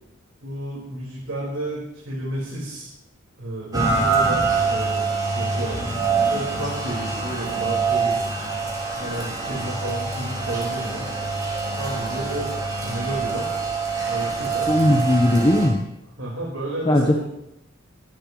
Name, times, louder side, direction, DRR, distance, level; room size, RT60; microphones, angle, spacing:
voice 1, 0.4-2.9 3.4-5.8 6.2-8.3 8.9-11.1 11.8-13.6 14.0-14.8 16.2-17.2, right 1 dB, 80° right, -5 dB, 4.9 m, -31 dB
Rain, 3.7-15.7, right 4 dB, 20° right, 4.3 m, -25 dB
voice 2, 14.7-15.8 16.9-17.2, left 1 dB, 25° left, 1 dB, 1.2 m, -18 dB
24.0 x 12.0 x 3.3 m, 0.84 s
head